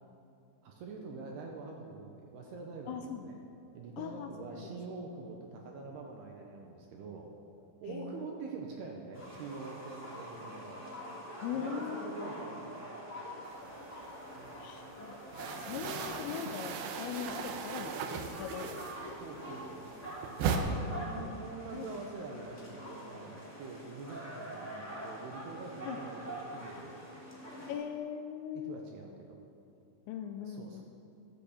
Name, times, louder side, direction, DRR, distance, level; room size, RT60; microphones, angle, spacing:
voice 1, 0.6-3.4 3.7-7.3 7.8-10.8 11.5-12.7 13.2-13.3 13.6-13.8 14.4-14.7 19.2-20.2 20.9-27.0 28.5-29.3 30.4-30.8, right 4 dB, 70° right, 1 dB, 2.6 m, -45 dB
voice 2, 2.9-3.2 4.0-4.8 7.9-8.3 11.4-12.2 14.6-15.2 15.6-18.8 19.1-19.2 20.8-21.3 21.7-21.9 25.9-26.0 27.7-28.8 30.1-30.8, left 8 dB, 80° left, 6 dB, 2.7 m, -40 dB
sound 1, 9.1-27.7, equal, 5° left, 1.4 m, -45 dB
sound 2, 13.6-14.6 14.8-19.3 19.6-20.6, right 7 dB, 90° right, 2.2 m, -37 dB
14.0 x 8.4 x 7.3 m, 2.5 s
omnidirectional pair, 5.5 m